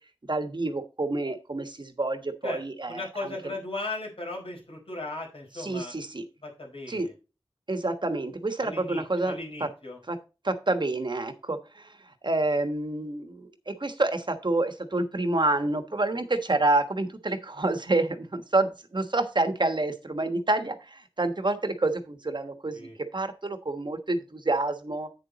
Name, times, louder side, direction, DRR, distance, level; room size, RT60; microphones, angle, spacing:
voice 1, 0.3-3.3 5.6-6.2 6.9-7.1 7.7-9.7 10.1-10.2 10.4-11.9 12.2-25.1, right 2 dB, 55° right, 8 dB, 1.2 m, -28 dB
voice 2, 2.9-5.9 6.4-7.1 8.6-10.0 22.7-23.0, left 2 dB, 90° left, -1 dB, 4.5 m, -37 dB
8.6 x 7.1 x 4.0 m, 0.31 s
wide cardioid pair, 55°, 9 cm